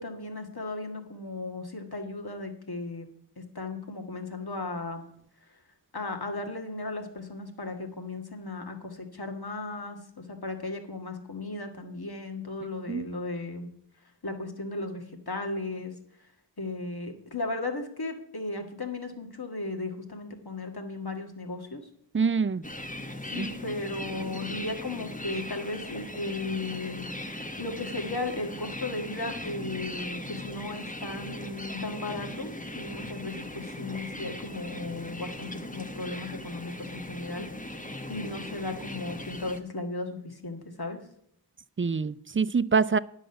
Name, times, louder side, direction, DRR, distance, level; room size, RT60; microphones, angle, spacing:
voice 1, 0.0-3.1 3.4-5.1 5.9-13.7 14.2-15.9 16.6-21.8 23.3-37.5 38.1-41.0, left 2 dB, 60° left, 1.7 m, -36 dB
voice 2, 22.1-22.6 23.4-23.5 41.8-43.0, right 5 dB, 30° right, 0.4 m, -25 dB
sound 1, 22.6-39.6, left 1 dB, 20° left, 1.0 m, -39 dB
10.0 x 6.5 x 7.7 m
wide cardioid pair, 45°, 42 cm